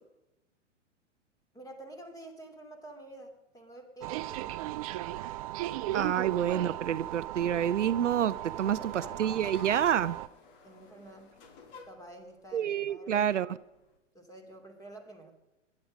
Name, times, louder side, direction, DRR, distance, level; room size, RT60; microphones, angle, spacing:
voice 1, 1.5-4.7 8.5-9.2 10.6-11.4 11.8-13.5 14.1-15.3, right 1 dB, 10° left, 5 dB, 3.1 m, -49 dB
sound 1, 4.0-10.3, right 15 dB, 30° right, 0.5 m, -37 dB
voice 2, 5.9-8.8 9.2-10.2 12.5-13.5, right 9 dB, 70° right, 15 dB, 0.7 m, -28 dB
sound 2, 8.7-14.0, left 4 dB, 45° left, 2.9 m, -55 dB
23.0 x 11.0 x 5.3 m, 0.99 s
figure-of-eight pair, 110°, 38 cm